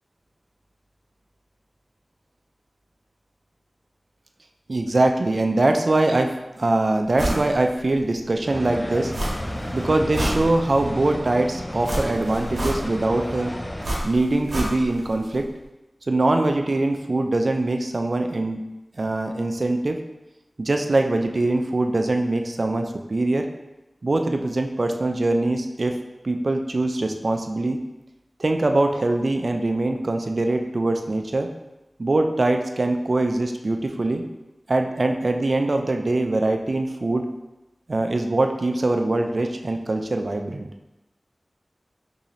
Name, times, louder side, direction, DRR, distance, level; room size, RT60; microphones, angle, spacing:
voice 1, 4.7-9.1 9.7-13.5 14.0-15.5 16.1-18.6 19.0-20.0 20.6-23.5 24.0-26.0 26.2-27.8 28.4-31.5 32.0-34.2 34.7-37.3 37.9-40.7, right 2 dB, 60° right, 5 dB, 0.3 m, -23 dB
sound 1, 7.2-7.5 7.9-8.0 9.1-9.6 9.9-10.9 11.8-13.1 13.8-15.1 15.3-15.4, right 1 dB, 80° right, 0.9 m, -28 dB
sound 2, 8.4-13.9, left 1 dB, 20° left, 0.4 m, -33 dB
3.0 x 2.8 x 3.9 m, 1.0 s
wide cardioid pair, 55°, 0 cm